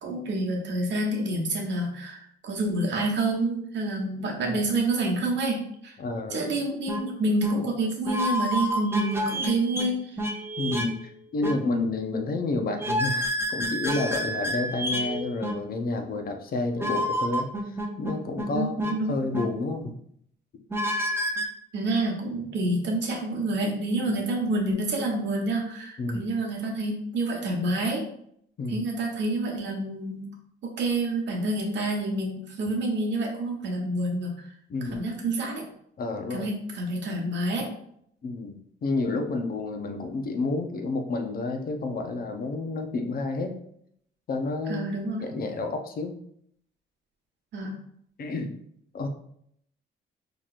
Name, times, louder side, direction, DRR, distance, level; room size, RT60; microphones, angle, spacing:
voice 1, 0.0-5.9 6.3-10.2 18.5-19.2 21.7-28.1 28.7-30.3 30.6-34.5 34.9-35.6 36.3-37.7 44.7-45.2 47.5-47.7, right 2 dB, 65° right, 0 dB, 1.1 m, -28 dB
voice 2, 6.0-6.4 10.6-19.9 26.0-26.3 28.6-28.9 34.7-35.0 36.0-36.5 38.2-43.6 44.3-44.9 45.2-46.1 48.2-48.5 48.9-49.1, left 3 dB, 50° left, 4 dB, 0.6 m, -30 dB
sound 1, 6.9-7.0 7.4-7.5 8.1-9.9 10.2-10.9 11.4-11.6 12.8-15.5 16.8-18.5 18.8-18.9 19.3-19.5 20.7-21.5, equal, 10° right, 0.6 m, -29 dB
4.3 x 3.0 x 2.5 m, 0.69 s
cardioid pair, 90°, 20 cm